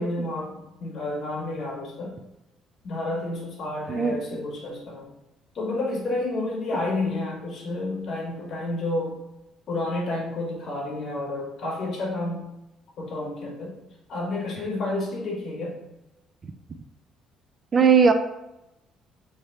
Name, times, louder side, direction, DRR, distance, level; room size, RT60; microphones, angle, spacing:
voice 1, 0.0-2.2 2.8-5.1 5.5-9.2 9.7-12.5 13.0-13.8 14.1-15.8, left 2 dB, 50° left, -2 dB, 1.4 m, -30 dB
voice 2, 3.9-4.2 17.7-18.1, right 6 dB, 30° right, 8 dB, 0.3 m, -18 dB
3.3 x 2.8 x 4.4 m, 0.95 s
cardioid pair, 120°, 0 cm